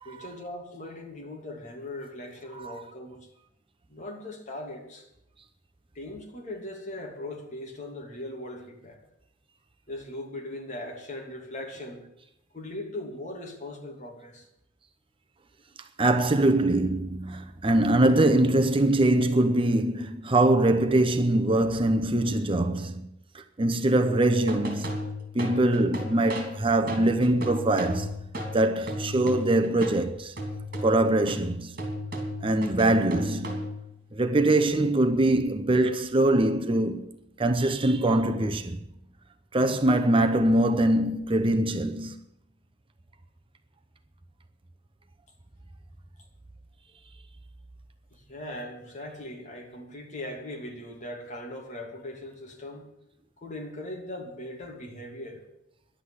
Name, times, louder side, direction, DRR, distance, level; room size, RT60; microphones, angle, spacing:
voice 1, 0.0-3.2 3.9-5.1 5.9-9.0 9.9-12.0 12.5-14.5 48.1-52.9 53.4-55.4, left 1 dB, 40° left, 2.6 m, -39 dB
voice 2, 16.0-23.1 23.3-25.0 25.3-28.1 28.5-30.4 30.8-31.8 32.4-33.6 34.1-38.8 39.5-42.2, right 1 dB, 30° right, 0.7 m, -23 dB
sound 1, 24.3-30.0 30.4-33.9, equal, 50° right, 3.0 m, -35 dB
11.5 x 8.3 x 9.6 m
head